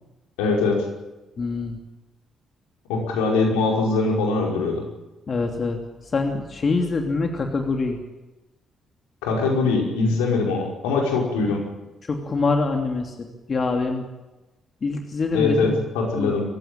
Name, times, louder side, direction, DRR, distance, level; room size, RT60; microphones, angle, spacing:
voice 1, 0.4-0.8 2.9-4.8 9.2-11.6 15.3-15.7 15.9-16.4, left 3 dB, 80° left, 0 dB, 5.4 m, -22 dB
voice 2, 1.4-1.8 5.3-8.0 12.0-13.2 13.5-14.0 14.8-15.8 16.2-16.4, left 3 dB, 45° left, 3 dB, 2.9 m, -25 dB
25.5 x 15.5 x 9.0 m, 1.1 s
hypercardioid pair, 45°, 0 cm